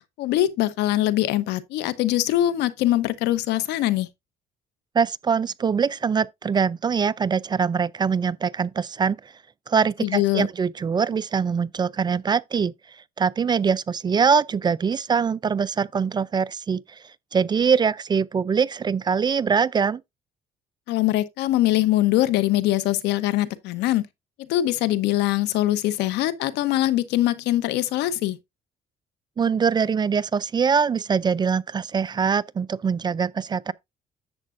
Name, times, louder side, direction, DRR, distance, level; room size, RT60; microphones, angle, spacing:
voice 1, 0.2-4.1 10.0-10.5 20.9-24.1 24.5-28.4, left 14 dB, 85° left, 0.9 m, -22 dB
voice 2, 4.9-9.3 9.7-12.7 13.2-17.0 17.3-20.0 29.4-33.7, right 6 dB, 25° right, 0.4 m, -23 dB
10.5 x 7.4 x 2.5 m
cardioid pair, 110°, 17 cm